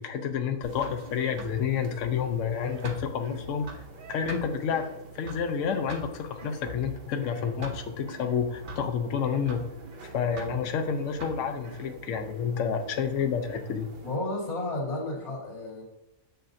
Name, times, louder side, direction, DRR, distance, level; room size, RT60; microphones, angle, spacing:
voice 1, 0.0-3.8 4.1-4.9 5.1-9.7 10.1-13.9, left 7 dB, 70° left, 5 dB, 1.0 m, -29 dB
sound 1, 0.6-14.2, right 2 dB, 45° right, 0.8 m, -43 dB
voice 2, 14.0-15.8, left 2 dB, 85° left, -6 dB, 2.8 m, -32 dB
6.6 x 6.5 x 2.6 m, 0.91 s
omnidirectional pair, 1.4 m